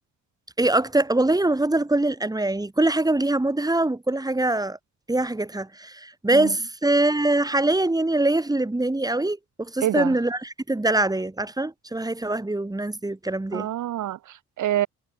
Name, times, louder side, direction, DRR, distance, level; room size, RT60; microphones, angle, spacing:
voice 1, 0.6-4.8 5.1-13.7, right 2 dB, 10° right, 7.4 m, -23 dB
voice 2, 9.8-10.1 13.5-14.9, right 12 dB, 75° right, 4.4 m, -26 dB
cardioid pair, 90°, 30 cm